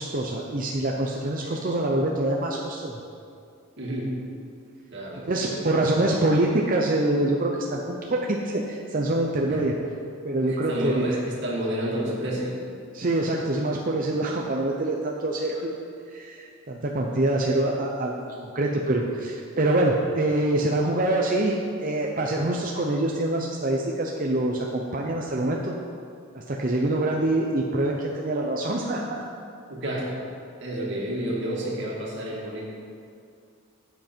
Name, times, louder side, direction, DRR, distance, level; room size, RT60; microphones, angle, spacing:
voice 1, 0.0-3.0 5.3-9.7 10.2-11.0 12.9-15.7 16.1-25.7 26.3-29.2, right 1 dB, 40° right, -1 dB, 0.7 m, -25 dB
voice 2, 3.8-4.2 4.9-5.7 9.5-9.7 10.5-12.6 29.7-30.1 30.6-32.6, right 1 dB, 55° right, -3 dB, 2.3 m, -30 dB
12.5 x 8.2 x 4.5 m, 2.3 s
head